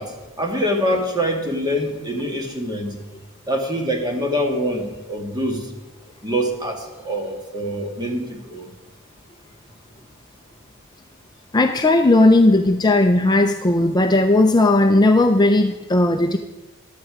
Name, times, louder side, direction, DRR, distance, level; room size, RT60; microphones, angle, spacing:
voice 1, 0.0-3.0 3.5-5.7 6.2-8.7, equal, 20° right, 2 dB, 1.9 m, -25 dB
voice 2, 11.5-16.4, left 2 dB, 20° left, 6 dB, 0.5 m, -16 dB
15.5 x 11.5 x 4.9 m, 1.1 s
head